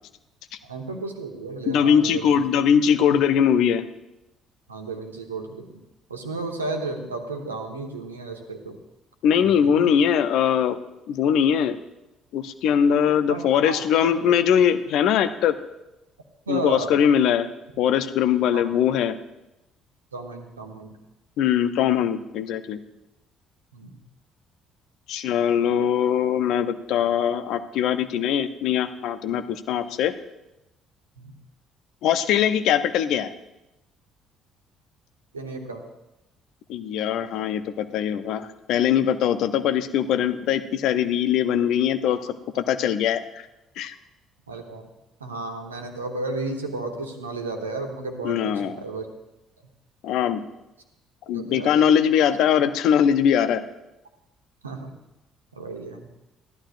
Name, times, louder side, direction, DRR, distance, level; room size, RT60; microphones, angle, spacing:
voice 1, 0.6-2.4 4.7-5.8 6.1-8.8 9.4-9.9 13.3-14.1 16.5-16.9 18.5-18.7 20.1-21.0 23.7-24.0 31.2-31.3 35.3-35.8 44.5-44.9 45.2-49.1 51.3-51.7 54.6-54.9 55.5-56.1, right 3 dB, 80° right, 4 dB, 1.0 m, -33 dB
voice 2, 1.7-3.9 9.2-10.8 11.1-11.8 12.3-15.5 16.5-17.5 17.8-19.2 21.4-22.8 25.1-30.1 32.0-33.3 36.7-42.2 42.5-43.4 43.8-43.9 48.2-48.8 50.0-50.4 51.3-53.6, left 8 dB, 60° left, 11 dB, 0.6 m, -21 dB
14.0 x 11.5 x 2.5 m, 0.94 s
figure-of-eight pair, 50°, 0 cm